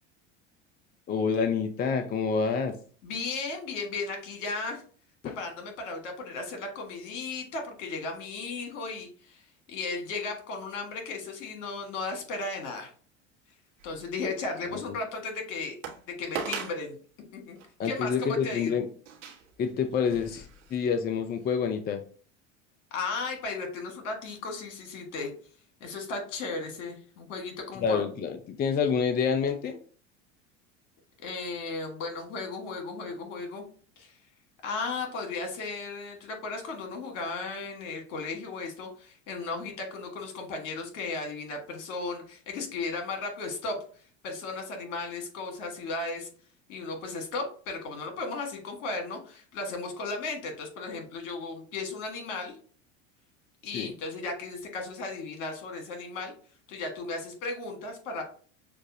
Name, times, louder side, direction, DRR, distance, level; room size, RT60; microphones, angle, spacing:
voice 1, 1.1-2.8 5.2-5.4 14.7-15.0 17.8-18.8 19.6-22.0 27.8-29.8 53.7-53.9, left 6 dB, 25° left, 8 dB, 0.5 m, -28 dB
voice 2, 3.0-4.8 5.2-12.9 13.8-15.7 16.1-16.9 17.3-17.6 17.8-18.8 22.9-25.3 25.8-28.0 31.2-33.6 34.0-34.1 34.6-43.8 44.2-46.3 46.7-52.6 53.6-56.3 56.7-58.2, left 3 dB, 70° left, 3 dB, 1.6 m, -35 dB
sound 1, 13.8-14.4 14.9-15.0 15.8-16.0 16.4-16.8 17.6-17.7 19.1-21.0 21.4-21.5, right 7 dB, 70° right, 1.2 m, -39 dB
6.5 x 2.5 x 2.7 m, 0.43 s
hypercardioid pair, 80°, 38 cm